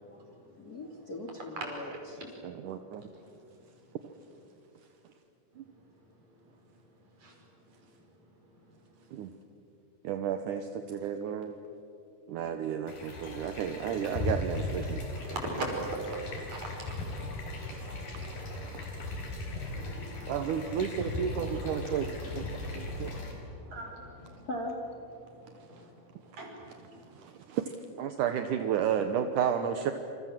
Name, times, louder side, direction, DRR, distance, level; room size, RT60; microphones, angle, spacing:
voice 1, 0.6-2.2 14.7-16.3 20.8-20.9 24.5-24.8, right 1 dB, 30° left, 3 dB, 2.4 m, -41 dB
voice 2, 2.4-3.1 5.6-5.7 9.1-9.3 10.0-11.5 12.3-15.0 18.1-18.3 18.6-18.9 20.3-22.5 22.7-23.2 27.2-29.9, right 8 dB, 70° right, 8 dB, 2.5 m, -32 dB
sound 1, 12.9-23.3, left 2 dB, 80° left, 5.9 m, -38 dB
voice 3, 15.1-15.7 16.1-16.2 16.5-17.2 17.5-18.3 18.6-18.7 19.5-20.3 21.3-22.2 22.5-24.5 25.6-25.9 26.3-26.8, right 2 dB, 55° right, 0 dB, 6.7 m, -43 dB
28.0 x 27.5 x 7.5 m, 2.7 s
omnidirectional pair, 3.9 m